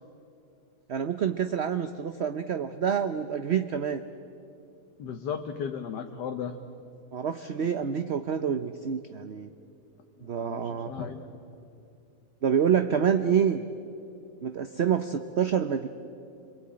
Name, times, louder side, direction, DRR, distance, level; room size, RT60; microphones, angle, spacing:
voice 1, 0.9-4.0 7.1-9.5 10.2-11.1 12.4-13.6 14.4-15.9, right 8 dB, 50° right, 9 dB, 0.8 m, -27 dB
voice 2, 5.0-6.6 10.2-11.3, left 7 dB, 80° left, 5 dB, 1.6 m, -35 dB
26.5 x 22.5 x 8.7 m, 2.7 s
omnidirectional pair, 1.8 m